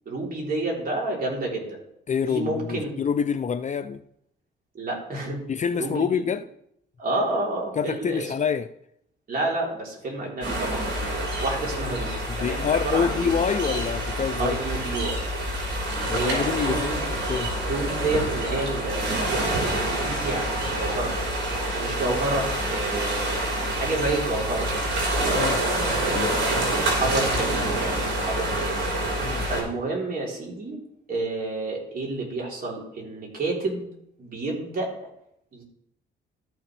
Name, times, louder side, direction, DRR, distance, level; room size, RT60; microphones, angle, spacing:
voice 1, 0.1-1.8 2.2-2.9 4.7-5.4 5.8-6.3 7.0-8.3 9.3-10.9 11.4-12.1 12.4-13.3 14.4-15.2 15.9-17.0 17.6-21.1 21.7-23.3 23.8-24.8 26.3-28.8 29.5-30.8 31.1-33.9 34.2-34.9 35.5-35.6, right 2 dB, 50° right, -2 dB, 3.6 m, -29 dB
voice 2, 2.1-4.0 5.5-6.4 7.8-8.7 12.3-14.6 16.1-17.5 25.3-25.6 26.1-26.7 29.2-29.4, left 7 dB, 35° left, 11 dB, 0.5 m, -27 dB
sound 1, 10.4-29.6, right 1 dB, 70° right, 4.1 m, -27 dB
13.0 x 6.2 x 3.3 m, 0.74 s
cardioid pair, 90°, 20 cm